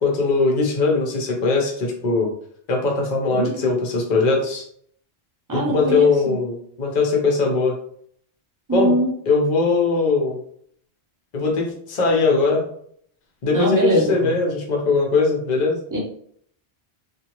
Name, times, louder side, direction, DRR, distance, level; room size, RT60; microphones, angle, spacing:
voice 1, 0.0-2.3 2.7-4.6 5.5-7.8 8.7-8.9 9.3-10.4 11.3-12.6 13.4-15.8, left 4 dB, 45° left, 0 dB, 0.8 m, -20 dB
voice 2, 3.3-3.6 5.5-6.1 8.7-9.1 13.5-14.4 15.9-16.0, right 1 dB, 20° right, -4 dB, 0.7 m, -21 dB
2.8 x 2.4 x 2.9 m, 0.64 s
omnidirectional pair, 1.2 m